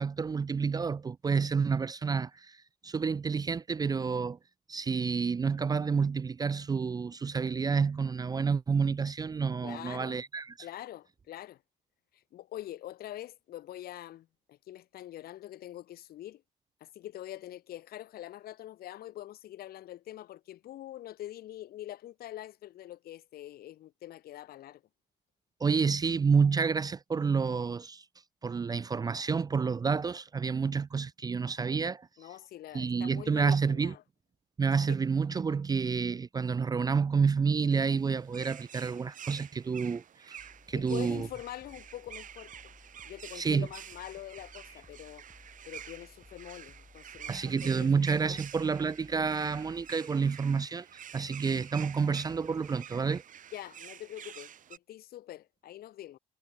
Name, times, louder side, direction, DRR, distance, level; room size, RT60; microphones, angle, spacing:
voice 1, 0.0-2.6 2.8-4.4 4.7-10.5 25.6-28.0 28.4-32.1 32.7-33.9 34.6-40.4 40.7-41.3 43.3-43.7 47.3-50.9 51.1-53.2, right 5 dB, 20° right, 0.5 m, -29 dB
voice 2, 9.6-10.2 10.6-11.6 12.1-16.4 16.8-24.8 32.2-34.0 34.9-35.0 40.7-42.7 43.0-45.2 45.6-47.5 47.8-47.9 48.3-48.7 53.5-56.2, left 13 dB, 65° left, 1.4 m, -44 dB
sound 1, 37.7-54.8, right 9 dB, 50° right, 3.0 m, -49 dB
sound 2, 40.4-49.9, left 3 dB, 15° left, 6.0 m, -58 dB
cardioid pair, 110°, 17 cm